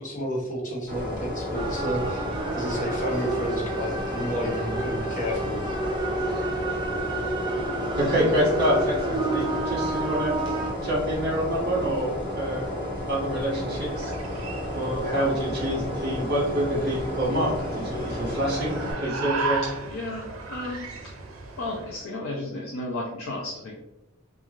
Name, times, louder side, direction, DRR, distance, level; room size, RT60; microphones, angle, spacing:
voice 1, 0.0-2.3 2.5-5.7, equal, 40° left, -3 dB, 0.7 m, -31 dB
sound 1, 0.9-18.9, left 1 dB, 5° left, 1.4 m, -33 dB
sound 2, 1.5-10.7, right 2 dB, 20° right, 0.4 m, -30 dB
voice 2, 8.0-10.4 10.8-12.7 13.1-14.1 14.7-19.6, equal, 50° right, -5 dB, 1.2 m, -26 dB
sound 3, 13.4-22.0, right 4 dB, 85° right, 0.5 m, -36 dB
voice 3, 19.6-21.2 21.6-23.8, left 2 dB, 80° left, -1 dB, 0.4 m, -34 dB
3.0 x 2.4 x 2.4 m, 0.93 s
head